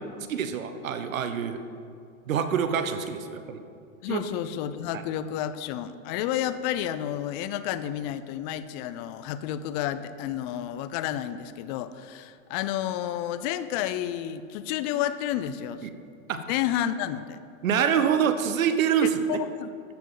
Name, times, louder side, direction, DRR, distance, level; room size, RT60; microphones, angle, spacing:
voice 1, 0.3-1.6 2.3-3.6 4.1-4.2 15.8-15.9 16.3-16.4 17.6-19.1, right 8 dB, 85° right, 9 dB, 1.0 m, -25 dB
voice 2, 4.0-15.9 16.5-17.4 19.0-19.7, left 11 dB, 35° left, 13 dB, 0.4 m, -31 dB
12.5 x 7.1 x 3.9 m, 2.3 s
hypercardioid pair, 125°, 39 cm